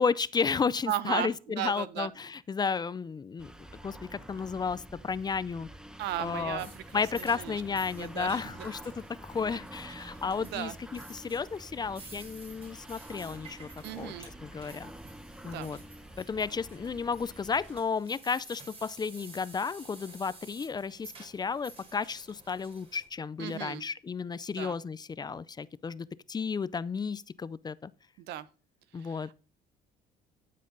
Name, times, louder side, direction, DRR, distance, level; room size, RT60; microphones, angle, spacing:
voice 1, 0.0-3.5 3.8-5.7 6.2-6.7 6.9-8.8 9.2-13.7 14.0-14.1 14.4-14.9 15.4-15.8 16.2-27.9 28.9-29.3, left 5 dB, 25° left, 0.5 m, -33 dB
voice 2, 0.9-2.1 6.0-7.6 8.0-8.7 10.0-10.2 10.5-10.7 13.8-14.3 15.5-15.7 23.4-23.8 24.6-24.8 28.2-28.5 29.0-29.3, right 12 dB, 80° right, 0.9 m, -36 dB
sound 1, 3.4-17.8, right 1 dB, 5° right, 0.9 m, -48 dB
sound 2, 6.6-23.1, right 3 dB, 35° right, 4.4 m, -52 dB
13.0 x 7.5 x 3.9 m
cardioid pair, 110°, 17 cm